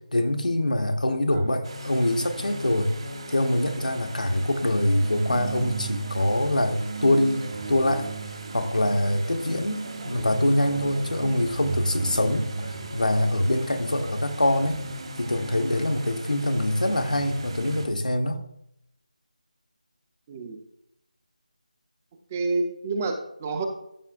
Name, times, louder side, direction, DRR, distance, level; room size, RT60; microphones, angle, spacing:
voice 1, 0.1-2.9 3.3-8.1 8.5-14.9 15.2-18.4, left 1 dB, 85° left, 1.0 m, -24 dB
sound 1, 1.6-17.9, right 2 dB, 45° right, 1.4 m, -36 dB
voice 2, 20.3-20.6 22.3-23.7, right 3 dB, 15° right, 0.5 m, -28 dB
13.0 x 5.7 x 2.4 m
figure-of-eight pair, 165°, 4 cm